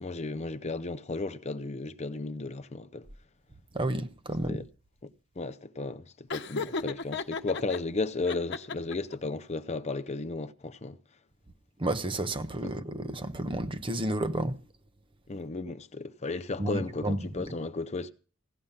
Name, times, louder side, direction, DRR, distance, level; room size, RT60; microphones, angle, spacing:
voice 1, 0.0-3.1 4.5-4.6 5.0-11.0 12.6-12.7 15.3-18.1, left 3 dB, 35° left, 0.6 m, -34 dB
voice 2, 3.7-4.6 11.8-14.6 16.6-17.2, right 1 dB, 25° right, 0.8 m, -31 dB
Laughter, 6.3-7.8 8.3-9.1, left 4 dB, 60° left, 1.0 m, -35 dB
16.5 x 10.5 x 5.7 m
head